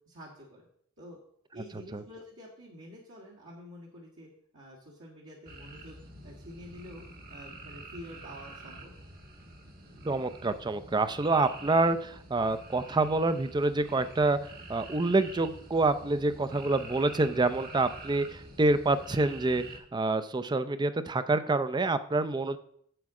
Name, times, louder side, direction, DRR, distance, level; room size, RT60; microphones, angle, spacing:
voice 1, 0.1-0.7 1.0-1.2 1.5-6.0 6.2-7.0 7.3-8.9, equal, 65° right, -4 dB, 1.7 m, -48 dB
sound 1, 5.5-19.8, right 2 dB, 45° right, 1.5 m, -47 dB
voice 2, 10.0-14.4 14.7-22.6, right 2 dB, 20° right, 12 dB, 0.4 m, -27 dB
7.8 x 7.4 x 4.8 m, 0.67 s
head